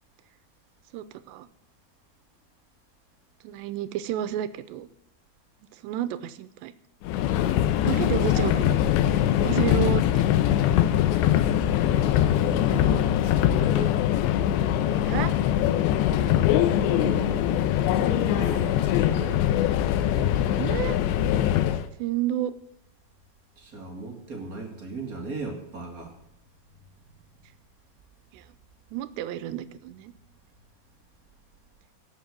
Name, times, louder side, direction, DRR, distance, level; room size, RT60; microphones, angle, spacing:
voice 1, 0.9-1.5 3.4-4.9 5.8-6.7 7.7-8.8 9.4-10.2 15.0-15.3 20.5-21.0 22.0-22.5 28.3-28.4 28.9-30.1, right 12 dB, 85° right, 14 dB, 2.9 m, -30 dB
Subway metro underground, 7.0-21.9, left 11 dB, 85° left, 3.1 m, -22 dB
voice 2, 12.0-13.9 16.8-17.5 17.9-19.4 23.5-26.1, right 3 dB, 35° right, 2 dB, 1.4 m, -37 dB
17.0 x 7.3 x 7.5 m, 0.78 s
omnidirectional pair, 5.0 m